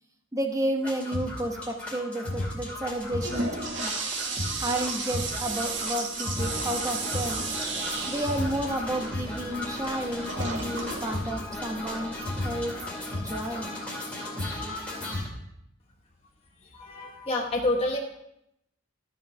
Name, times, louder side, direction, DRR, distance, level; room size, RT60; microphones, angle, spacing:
voice 1, 0.3-3.5 3.8-3.9 4.6-7.5 8.1-12.1 12.4-12.8 13.2-13.7 15.0-15.1, right 1 dB, 15° right, 3 dB, 1.1 m, -31 dB
sound 1, 0.8-15.3, left 1 dB, 5° left, 2.5 m, -34 dB
Toilet flush, 2.9-12.3, right 3 dB, 60° right, 1.6 m, -34 dB
voice 2, 16.8-18.0, left 2 dB, 30° left, -1 dB, 1.0 m, -27 dB
13.0 x 5.7 x 6.0 m, 0.80 s
head